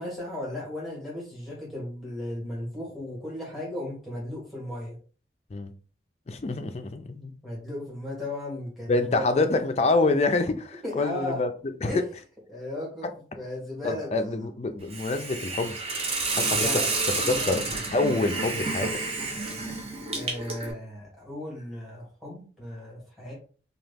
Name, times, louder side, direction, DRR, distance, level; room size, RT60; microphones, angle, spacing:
voice 1, 0.0-5.0 7.4-9.5 10.8-11.4 11.9-12.0 12.5-14.3 16.6-16.9 17.3-17.6 20.1-23.3, left 1 dB, ahead, 1.3 m, -35 dB
voice 2, 6.3-7.3 8.9-11.5 11.8-12.0 13.8-15.8 16.3-16.7 17.3-19.0, left 3 dB, 35° left, 0.4 m, -26 dB
Hiss, 14.9-20.7, right 3 dB, 35° right, 0.6 m, -30 dB
3.0 x 2.3 x 3.4 m
head